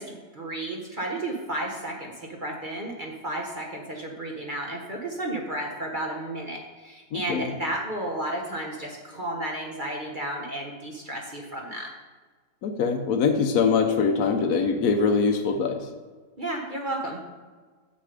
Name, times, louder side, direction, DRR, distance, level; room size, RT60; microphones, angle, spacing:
voice 1, 0.0-11.9 16.4-17.2, right 1 dB, 35° right, 0 dB, 0.9 m, -33 dB
voice 2, 7.1-7.5 12.6-15.9, left 5 dB, 60° left, 3 dB, 1.1 m, -23 dB
7.8 x 7.5 x 5.0 m, 1.4 s
omnidirectional pair, 2.0 m